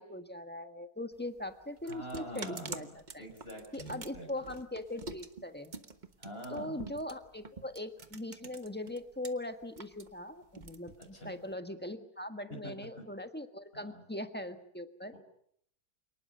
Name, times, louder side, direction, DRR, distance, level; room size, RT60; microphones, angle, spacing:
voice 1, 0.0-2.9 3.1-3.3 3.7-5.7 6.5-15.1, left 1 dB, 5° left, 7 dB, 1.4 m, -40 dB
sound 1, 1.1-9.3 9.6-11.5, right 4 dB, 30° right, 1.2 m, -47 dB
voice 2, 1.8-4.6 6.2-6.8 11.0-11.3 12.5-13.1 13.7-14.0 15.1-15.2, equal, 35° left, 3 dB, 6.5 m, -45 dB
28.0 x 19.0 x 6.8 m, 0.68 s
omnidirectional pair, 1.7 m